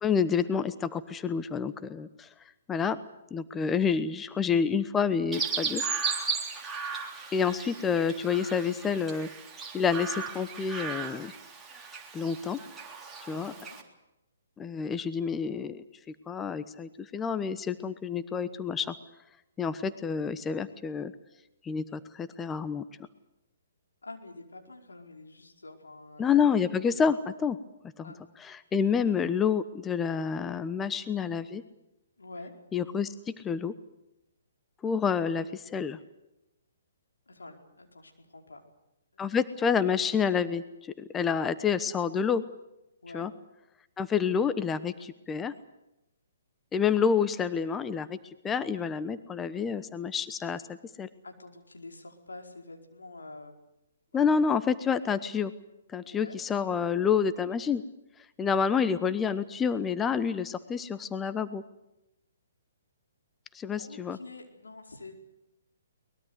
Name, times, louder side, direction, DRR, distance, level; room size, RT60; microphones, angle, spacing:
voice 1, 0.0-2.3 2.7-3.0 3.3-5.8 7.3-9.3 9.7-11.3 12.1-12.6 13.3-13.5 14.6-15.8 16.3-18.9 19.6-21.1 21.6-22.8 26.2-27.6 28.0-28.1 28.4-31.6 32.7-33.7 34.8-36.0 39.2-42.4 43.1-43.3 44.0-45.5 46.7-50.6 51.0-51.1 54.1-55.5 55.9-57.8 58.4-61.6 63.5-64.2, left 6 dB, 15° left, 13 dB, 1.0 m, -28 dB
Chirp tweet, 5.3-13.8, right 5 dB, 10° right, 3.5 m, -36 dB
voice 2, 13.3-13.9 24.0-26.5 28.0-28.2 32.2-32.5 37.3-38.6 39.1-39.2 43.0-43.3 51.2-53.5 54.1-54.3 56.1-56.4 63.8-65.1, left 2 dB, 90° left, 3 dB, 4.8 m, -47 dB
23.0 x 21.0 x 8.2 m, 0.91 s
hypercardioid pair, 140°, 0 cm